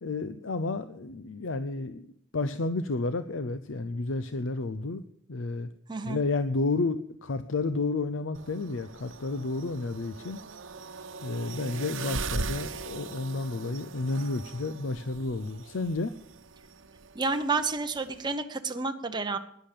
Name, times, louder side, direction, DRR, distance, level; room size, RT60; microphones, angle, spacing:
voice 1, 0.0-2.1 2.3-5.0 5.3-5.7 6.0-10.4 11.2-16.1, left 3 dB, 90° left, 12 dB, 0.7 m, -31 dB
sound 1, 8.3-18.3, right 4 dB, 85° right, 0.9 m, -40 dB
voice 2, 17.1-19.4, right 4 dB, 25° right, 6 dB, 0.9 m, -30 dB
13.0 x 10.5 x 6.7 m, 0.71 s
head